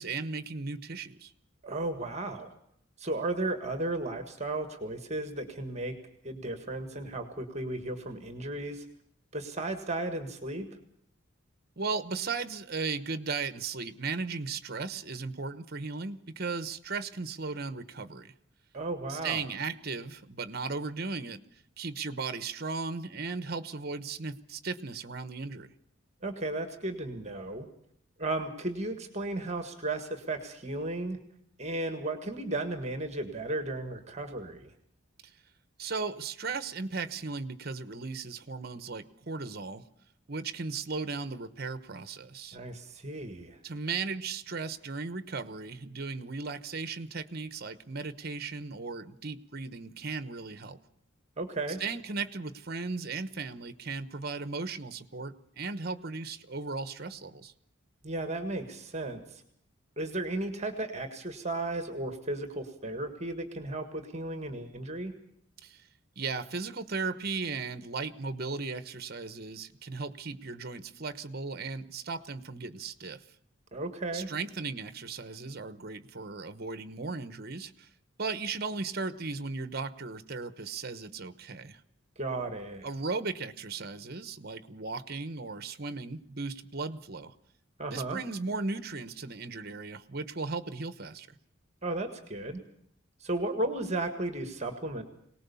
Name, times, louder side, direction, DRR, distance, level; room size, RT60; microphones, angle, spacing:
voice 1, 0.0-1.3 11.8-18.3 19.1-21.4 21.8-25.7 35.8-39.9 40.3-42.6 43.6-50.8 51.8-57.5 65.6-65.8 66.2-73.2 74.1-77.9 78.2-81.8 82.8-87.3 87.9-91.3, right 4 dB, 50° right, 13 dB, 1.0 m, -36 dB
voice 2, 1.6-2.5 3.0-6.0 6.2-8.9 9.3-10.7 18.7-19.4 26.2-27.7 28.2-31.2 31.6-34.7 42.5-43.6 51.4-51.8 58.0-59.4 60.0-65.1 73.7-74.3 82.2-82.9 87.8-88.2 91.8-92.6 93.2-95.0, right 2 dB, 35° right, 7 dB, 1.7 m, -34 dB
23.0 x 19.0 x 7.0 m, 0.70 s
head